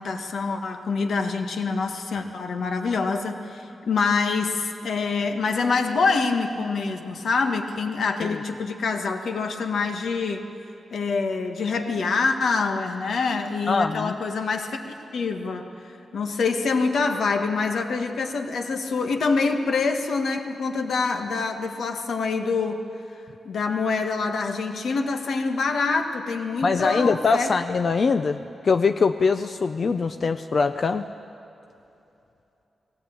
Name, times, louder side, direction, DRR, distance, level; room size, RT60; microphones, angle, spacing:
voice 1, 0.0-10.4 10.9-15.7 16.1-22.8 23.4-27.5, left 4 dB, 65° left, 5 dB, 1.5 m, -25 dB
voice 2, 13.7-14.2 26.6-31.1, left 4 dB, 45° left, 8 dB, 0.5 m, -23 dB
19.5 x 16.5 x 8.7 m, 2.9 s
wide cardioid pair, 150°, 0 cm